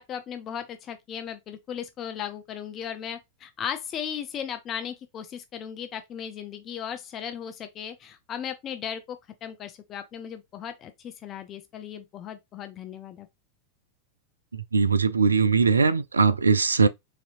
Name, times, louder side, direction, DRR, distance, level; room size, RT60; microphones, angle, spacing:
voice 1, 0.0-13.3, left 8 dB, 30° left, 0.5 m, -36 dB
voice 2, 14.5-16.9, right 5 dB, 75° right, 0.3 m, -21 dB
4.1 x 2.7 x 2.4 m
figure-of-eight pair, 90°, 0 cm